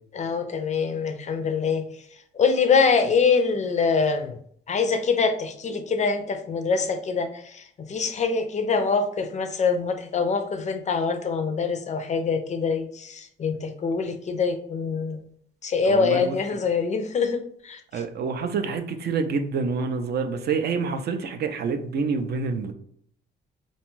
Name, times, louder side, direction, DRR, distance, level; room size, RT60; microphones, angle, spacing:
voice 1, 0.1-4.4 4.7-15.3 15.6-18.1, left 5 dB, 35° left, 7 dB, 0.4 m, -24 dB
voice 2, 15.8-16.4 17.9-22.7, right 5 dB, 55° right, 7 dB, 0.4 m, -27 dB
2.6 x 2.2 x 3.0 m, 0.64 s
cardioid pair, 90°, 20 cm